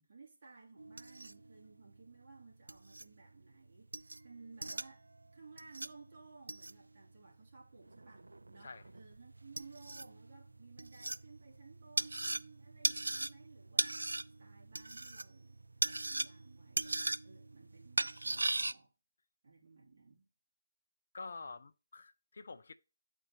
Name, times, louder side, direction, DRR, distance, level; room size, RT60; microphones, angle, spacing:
voice 1, 0.0-5.1 5.3-14.0 14.4-18.9 19.4-20.3, right 4 dB, 50° right, 2.7 m, -58 dB
sound 1, 0.8-18.7, right 2 dB, 80° right, 0.3 m, -39 dB
voice 2, 21.1-22.7, left 4 dB, 65° left, 0.5 m, -47 dB
11.0 x 4.4 x 3.0 m
figure-of-eight pair, 145°, 0 cm